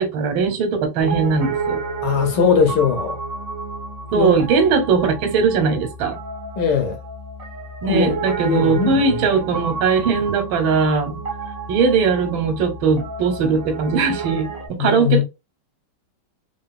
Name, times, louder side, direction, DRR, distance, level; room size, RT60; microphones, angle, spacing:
voice 1, 0.0-1.8 4.1-6.1 7.8-11.2 11.7-15.2, right 5 dB, 90° right, 1.6 m, -19 dB
Piano, 1.0-14.7, right 4 dB, 35° right, 0.6 m, -30 dB
voice 2, 2.0-3.2 4.1-4.4 6.6-7.0 7.9-9.2 14.8-15.2, left 6 dB, 70° left, 1.2 m, -20 dB
3.7 x 2.0 x 2.4 m
omnidirectional pair, 2.2 m